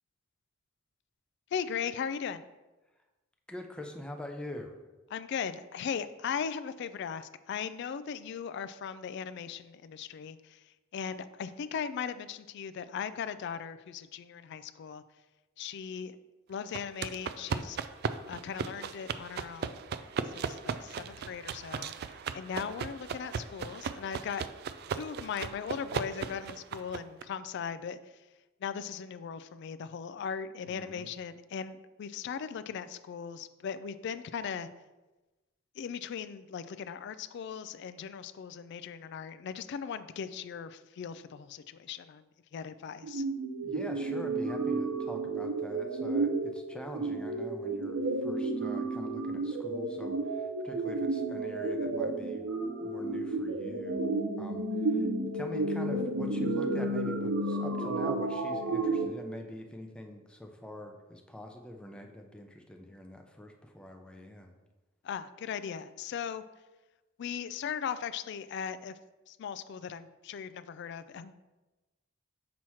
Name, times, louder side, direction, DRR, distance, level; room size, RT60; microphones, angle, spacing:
voice 1, 1.5-2.4 5.1-15.0 15.6-16.2 16.5-17.8 18.3-19.8 20.2-24.5 24.9-28.2 28.6-34.7 35.8-43.2 65.0-66.4 67.2-69.0 69.3-71.3, left 7 dB, 60° left, 12 dB, 0.3 m, -38 dB
voice 2, 3.5-4.8 30.7-31.1 43.6-54.1 54.4-55.1 55.3-64.5, left 1 dB, 5° left, 3 dB, 0.6 m, -45 dB
sound 1, 16.7-27.2, right 6 dB, 50° right, 0.3 m, -37 dB
sound 2, 43.0-59.1, right 2 dB, 85° right, 0.6 m, -32 dB
6.2 x 3.0 x 5.6 m, 1.1 s
head